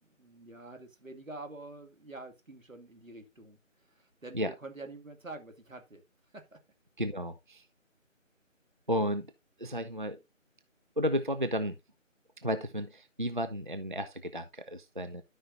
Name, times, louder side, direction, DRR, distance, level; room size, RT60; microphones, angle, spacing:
voice 1, 0.0-6.0 6.3-6.6, right 2 dB, 80° right, 2.4 m, -47 dB
voice 2, 7.0-7.7 8.9-9.3 9.6-10.2 11.0-11.8 12.4-15.2, equal, 40° right, 0.5 m, -33 dB
12.5 x 5.4 x 2.7 m
figure-of-eight pair, 160°, 40 cm